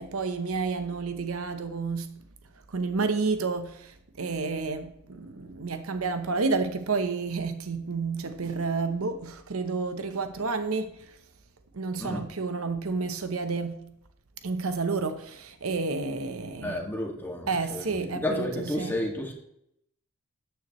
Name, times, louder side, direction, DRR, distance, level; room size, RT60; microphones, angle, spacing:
voice 1, 0.0-2.2 2.7-11.2 11.7-13.8 14.4-16.9 17.5-19.1, right 4 dB, 70° right, 0.9 m, -30 dB
voice 2, 16.6-19.3, left 1 dB, 10° left, 2.0 m, -31 dB
13.0 x 9.1 x 3.1 m
head